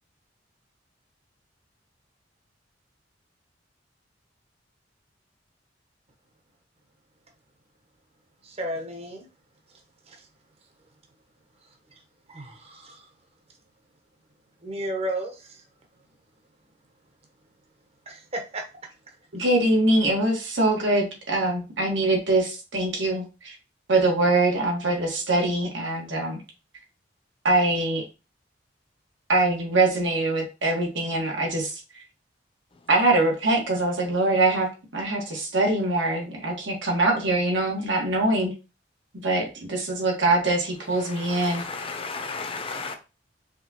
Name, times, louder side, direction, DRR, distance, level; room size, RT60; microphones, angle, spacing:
voice 1, 8.4-9.3 10.1-10.3 12.3-13.1 14.6-15.6 18.1-18.6, right 1 dB, 35° right, 0.9 m, -33 dB
voice 2, 19.3-23.5 23.9-26.4 27.4-28.0 29.3-31.8 32.9-38.5 39.2-41.7, right 2 dB, 80° right, 1.7 m, -23 dB
voice 3, 41.2-43.0, left 4 dB, 30° left, 0.7 m, -34 dB
4.8 x 3.6 x 2.9 m
head